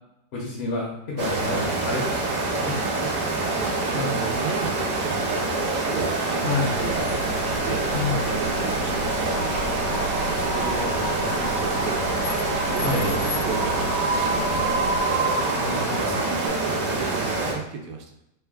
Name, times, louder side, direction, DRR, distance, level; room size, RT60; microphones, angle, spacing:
voice 1, 0.3-2.0 2.6-2.7 3.9-4.4 6.4-6.7 7.9-8.2 12.8-13.2 15.6-16.2, left 3 dB, 60° left, -4 dB, 0.6 m, -28 dB
sound 1, 1.2-17.5, right 2 dB, 65° right, 1.0 m, -26 dB
voice 2, 2.9-7.2 7.6-9.6 10.3-12.5 12.7-15.4 16.1-18.2, right 6 dB, 85° right, 3 dB, 1.2 m, -35 dB
sound 2, 6.7-15.0, equal, 85° left, 1.2 m, -35 dB
Wind, 8.4-16.5, right 2 dB, 40° right, 0.6 m, -31 dB
3.2 x 2.2 x 3.3 m, 0.83 s
omnidirectional pair, 1.9 m